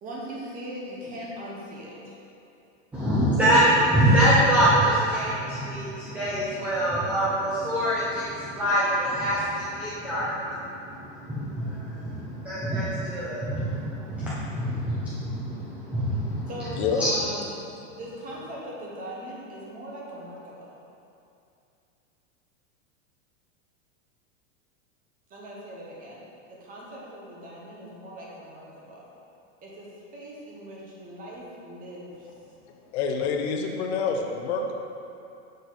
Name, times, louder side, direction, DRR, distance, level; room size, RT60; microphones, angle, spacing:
voice 1, 0.0-2.2 16.5-17.5 17.9-20.7 25.3-26.2 26.5-29.0 29.6-32.3, equal, 20° right, -4 dB, 1.0 m, -40 dB
voice 2, 2.9-16.5 17.0-17.1, right 1 dB, 5° right, -10 dB, 0.4 m, -24 dB
voice 3, 32.9-34.7, left 5 dB, 55° left, 2 dB, 0.7 m, -27 dB
6.4 x 4.0 x 4.0 m, 2.6 s
supercardioid pair, 150°, 38 cm